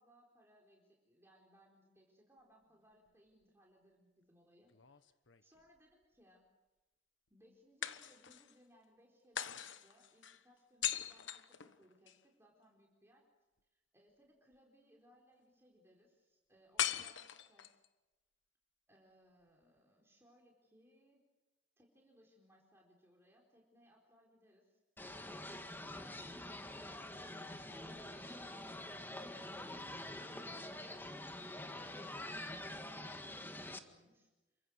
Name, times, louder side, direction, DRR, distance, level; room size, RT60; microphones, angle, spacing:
voice 1, 0.0-5.0 5.4-6.4 7.3-13.3 13.7-17.8 18.9-21.2 21.8-24.8 25.3-29.3 30.1-34.6, equal, 15° right, -1 dB, 4.2 m, -68 dB
sound 1, 4.7-5.8 7.8-8.6 9.4-12.2 16.8-17.9, left 10 dB, 75° left, 1.2 m, -41 dB
sound 2, 25.0-33.8, left 1 dB, 10° left, 1.8 m, -46 dB
28.5 x 24.5 x 6.6 m, 1.1 s
head